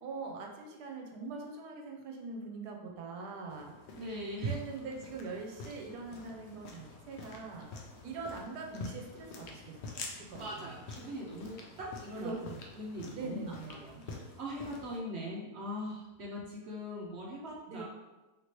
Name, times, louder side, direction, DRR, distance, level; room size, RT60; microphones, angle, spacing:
voice 1, 0.0-3.7 4.4-7.7 8.0-9.8 10.1-10.8 12.2-12.6 13.1-14.1 17.7-17.8, right 3 dB, 85° right, 1 dB, 1.1 m, -42 dB
sound 1, 3.5-15.0, left 3 dB, 70° left, 0.6 m, -48 dB
voice 2, 4.0-4.6 10.4-12.3 12.7-13.4 13.7-17.9, equal, 65° right, -3 dB, 0.6 m, -40 dB
3.1 x 2.9 x 3.0 m, 1.1 s
omnidirectional pair, 1.7 m